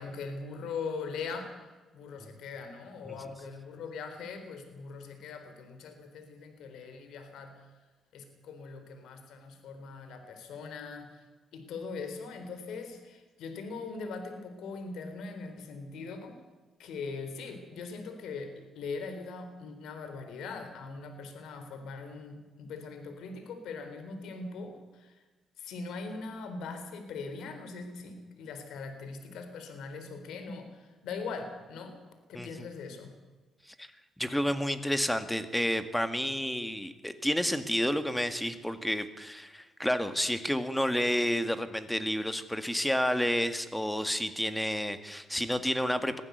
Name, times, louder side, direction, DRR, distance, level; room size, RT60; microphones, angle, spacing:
voice 1, 0.0-1.6 1.9-7.8 8.1-11.2 11.5-16.4 16.8-25.2 25.6-32.0 32.3-33.2, left 4 dB, 80° left, 7 dB, 3.9 m, -41 dB
voice 2, 32.3-32.7 33.8-33.9 34.2-46.2, equal, 5° left, 10 dB, 2.0 m, -30 dB
22.0 x 15.0 x 8.1 m, 1.3 s
cardioid pair, 90°, 0 cm